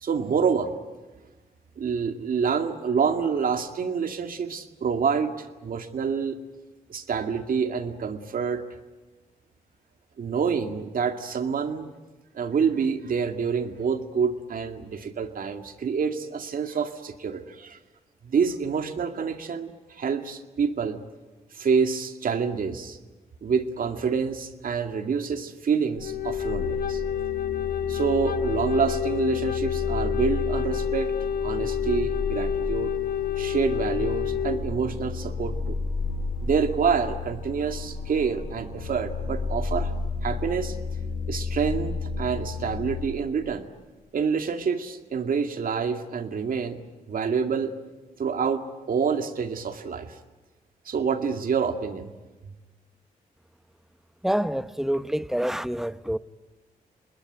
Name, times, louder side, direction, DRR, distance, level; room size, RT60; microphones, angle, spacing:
voice 1, 0.0-0.7 1.8-6.4 6.9-8.6 10.2-11.9 12.3-17.8 18.2-21.0 21.5-23.0 23.4-27.0 27.9-31.1 31.4-32.9 33.4-35.8 36.4-39.9 40.2-40.8 41.3-43.6 44.1-46.8 47.1-47.7 48.2-50.1 50.9-52.1, right 6 dB, 65° right, 2.3 m, -27 dB
sound 1, 26.0-43.1, left 4 dB, 90° left, 6.8 m, -32 dB
Wind instrument woodwind instrument, 26.0-34.6, left 9 dB, 70° left, 1.2 m, -29 dB
voice 2, 54.2-56.2, equal, 5° right, 1.0 m, -27 dB
26.5 x 20.5 x 9.1 m
cardioid pair, 65°, 15 cm